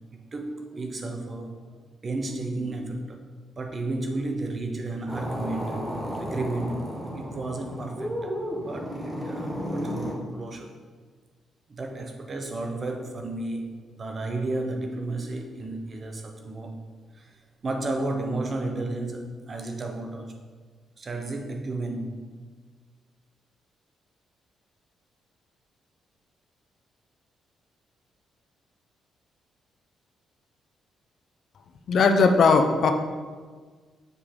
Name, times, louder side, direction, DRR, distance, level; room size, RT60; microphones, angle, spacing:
voice 1, 0.1-1.6 2.0-3.2 3.6-5.8 6.2-10.7 11.7-16.8 17.1-20.3 21.0-22.2, right 2 dB, 35° right, 4 dB, 0.8 m, -33 dB
sound 1, 5.1-10.2, equal, 10° right, 1.1 m, -33 dB
voice 2, 31.9-32.9, left 4 dB, 60° left, 6 dB, 0.5 m, -18 dB
6.8 x 4.6 x 3.7 m, 1.5 s
cardioid pair, 105°, 0 cm